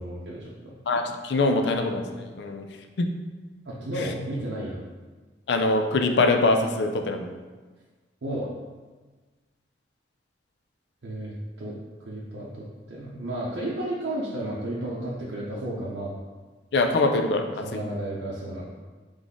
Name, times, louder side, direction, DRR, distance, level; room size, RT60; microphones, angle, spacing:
voice 1, 0.0-0.8 3.6-4.8 8.2-8.5 11.0-11.8 12.1-16.1 17.6-18.6, right 1 dB, 90° right, -6 dB, 0.7 m, -33 dB
voice 2, 0.9-2.7 3.0-3.1 4.0-4.1 5.5-7.3 16.7-17.8, left 2 dB, 70° left, 5 dB, 0.4 m, -23 dB
4.0 x 3.2 x 3.6 m, 1.3 s
head